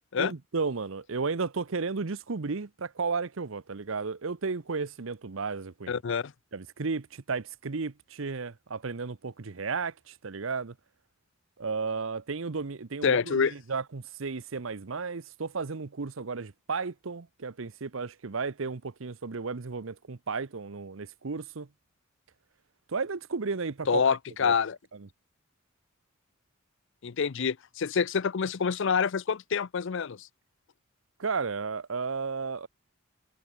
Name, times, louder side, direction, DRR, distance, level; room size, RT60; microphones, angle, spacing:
voice 1, 0.2-6.0 6.5-10.7 11.6-21.7 22.9-24.1 24.4-24.5 24.9-25.1 31.2-32.7, right 4 dB, 65° right, 0.8 m, -33 dB
voice 2, 5.9-6.3 13.0-13.5 23.9-24.8 27.0-30.3, left 6 dB, 60° left, 0.5 m, -27 dB
head